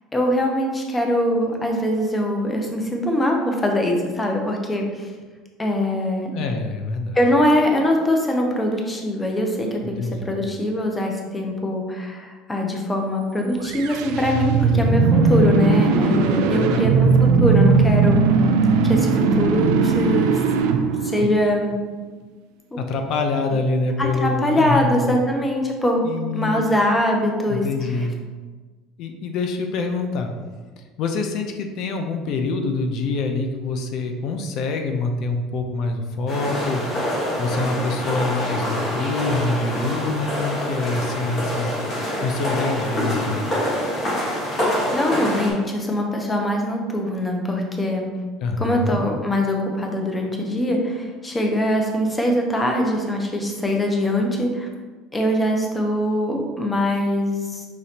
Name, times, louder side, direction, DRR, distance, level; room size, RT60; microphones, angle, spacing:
voice 1, 0.1-5.1 5.6-6.3 7.1-10.0 10.3-17.1 17.4-18.2 18.8-20.4 21.1-21.7 22.7-22.8 24.0-26.0 26.3-27.7 44.9-48.1 48.6-54.7 55.1-57.7, left 1 dB, 10° left, 1 dB, 0.6 m, -22 dB
voice 2, 6.3-7.2 9.8-10.3 16.5-16.9 22.8-25.1 26.0-26.7 27.5-28.2 29.0-30.3 31.0-36.8 37.4-41.8 42.2-43.5 48.4-49.0, left 3 dB, 50° left, 5 dB, 0.5 m, -25 dB
sound 1, 13.6-21.7, right 4 dB, 80° right, 0.4 m, -18 dB
sound 2, 36.3-45.5, equal, 30° left, 1.3 m, -26 dB
5.8 x 3.1 x 2.8 m, 1.4 s
cardioid pair, 155°, 0 cm